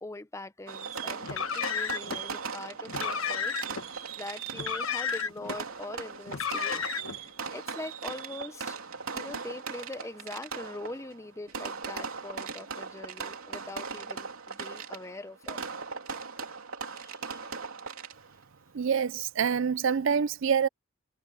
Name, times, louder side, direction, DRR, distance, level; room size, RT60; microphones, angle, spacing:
voice 1, 0.0-6.8 7.1-8.8 9.1-15.6 16.9-17.4, left 2 dB, 15° left, 0.6 m, -43 dB
Fireworks, 0.7-18.4, right 5 dB, 75° right, 3.2 m, -39 dB
Car, 1.2-2.2 2.9-3.8 4.5-5.6 6.3-7.2, left 7 dB, 70° left, 1.3 m, -32 dB
voice 2, 18.7-20.7, right 6 dB, 60° right, 0.4 m, -26 dB
head